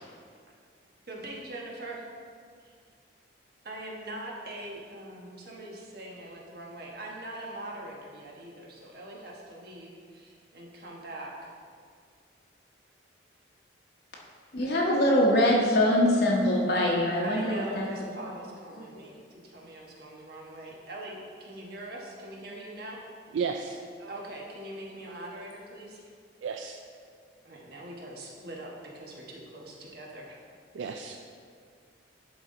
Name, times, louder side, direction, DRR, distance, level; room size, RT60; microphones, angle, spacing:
voice 1, 1.1-2.0 3.6-11.5 17.2-23.0 23.5-23.6 24.1-26.1 27.4-30.4, right 1 dB, 55° right, -2 dB, 1.2 m, -42 dB
voice 2, 14.5-17.9, left 1 dB, 55° left, -3 dB, 0.9 m, -23 dB
voice 3, 23.3-24.1 25.1-25.2 26.4-26.8 30.7-31.2, right 5 dB, 75° right, 4 dB, 0.3 m, -34 dB
11.0 x 4.0 x 3.8 m, 2.1 s
head